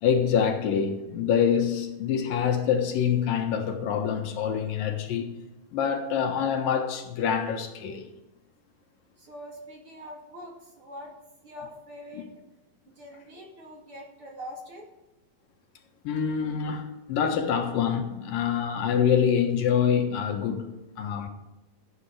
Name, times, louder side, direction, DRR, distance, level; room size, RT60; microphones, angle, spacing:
voice 1, 0.0-5.4 5.7-8.1 12.2-12.3 16.0-21.3, left 7 dB, 75° left, 3.0 m, -26 dB
voice 2, 9.2-11.1 11.4-12.3 12.9-14.9, equal, 40° right, 2.8 m, -43 dB
14.5 x 9.3 x 4.9 m
omnidirectional pair, 4.1 m